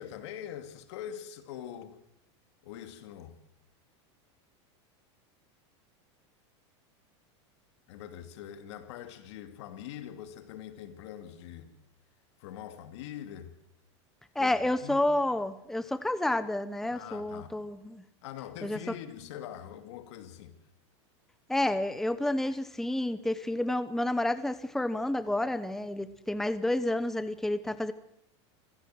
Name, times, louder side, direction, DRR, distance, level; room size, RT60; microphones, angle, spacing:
voice 1, 0.0-2.0 2.6-3.4 7.9-11.7 12.4-13.5 14.4-14.5 14.8-15.0 16.9-17.5 18.2-20.6, left 10 dB, 70° left, 2.7 m, -43 dB
voice 2, 14.3-18.0 18.6-18.9 21.5-27.9, left 1 dB, ahead, 0.9 m, -30 dB
25.5 x 16.5 x 7.7 m
supercardioid pair, 130°, 15 cm